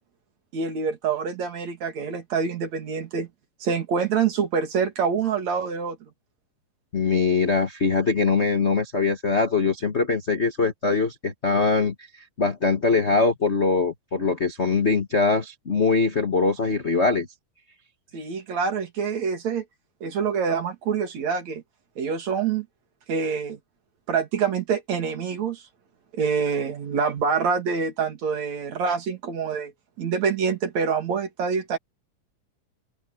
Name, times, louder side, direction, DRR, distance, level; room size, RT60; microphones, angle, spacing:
voice 1, 0.5-3.3 3.6-6.0 18.1-19.6 20.0-21.6 22.0-22.7 23.1-23.6 24.1-25.6 26.1-29.7 30.0-31.8, right 6 dB, 60° right, 3.6 m, -26 dB
voice 2, 6.9-17.3, left 4 dB, 50° left, 0.7 m, -22 dB
open air
omnidirectional pair, 3.8 m